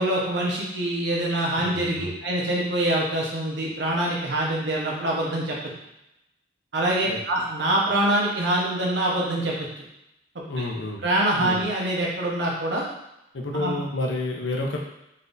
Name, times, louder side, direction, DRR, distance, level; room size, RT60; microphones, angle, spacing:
voice 1, 0.0-5.6 6.7-9.5 10.6-10.7 11.0-12.8 13.5-13.8, right 1 dB, 60° right, -3 dB, 1.0 m, -25 dB
voice 2, 1.6-2.1 7.0-7.2 10.5-11.0 11.4-11.6 13.3-14.8, left 2 dB, 65° left, 0 dB, 0.7 m, -29 dB
4.1 x 3.5 x 2.6 m, 0.86 s
head